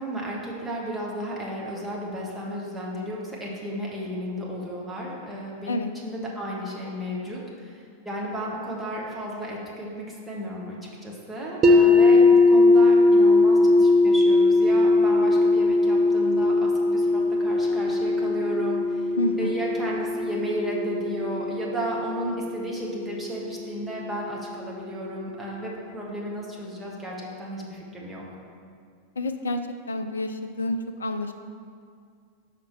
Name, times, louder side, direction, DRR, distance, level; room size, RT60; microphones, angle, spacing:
voice 1, 0.0-10.8 11.0-19.1 19.4-28.3, right 1 dB, 10° right, -4 dB, 1.2 m, -33 dB
sound 1, 11.6-23.6, left 2 dB, 30° right, 0.5 m, -20 dB
voice 2, 19.2-19.6 29.2-29.6 29.9-31.3, left 2 dB, 70° left, 8 dB, 0.4 m, -28 dB
6.1 x 5.0 x 4.4 m, 2.2 s
figure-of-eight pair, 90°, 0 cm